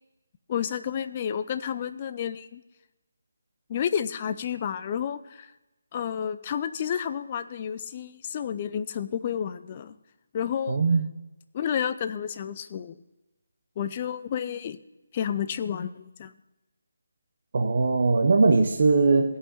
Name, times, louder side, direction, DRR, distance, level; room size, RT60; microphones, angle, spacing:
voice 1, 0.5-2.6 3.7-5.5 5.9-10.0 10.3-10.8 11.5-13.0 13.8-14.8 15.1-16.3, left 8 dB, 20° left, 11 dB, 0.3 m, -30 dB
voice 2, 10.7-11.1 17.5-19.4, right 3 dB, 35° right, 5 dB, 0.6 m, -20 dB
14.5 x 5.6 x 5.5 m, 1.0 s
hypercardioid pair, 180°, 0 cm